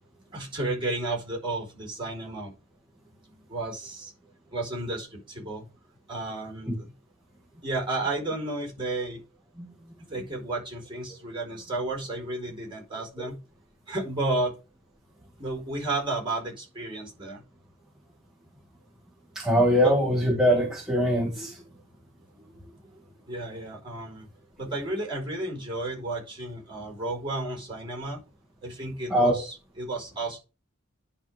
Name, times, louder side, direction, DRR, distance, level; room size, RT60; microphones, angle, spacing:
voice 1, 0.3-2.5 3.5-4.1 4.5-5.6 6.1-6.9 7.6-9.2 10.1-13.4 13.9-14.5 15.4-17.4 19.8-19.9 23.3-24.3 24.6-28.2 28.6-30.4, right 2 dB, 25° right, 4.7 m, -32 dB
voice 2, 19.3-21.6 29.1-29.3, equal, 5° right, 1.6 m, -22 dB
10.5 x 3.8 x 6.3 m
head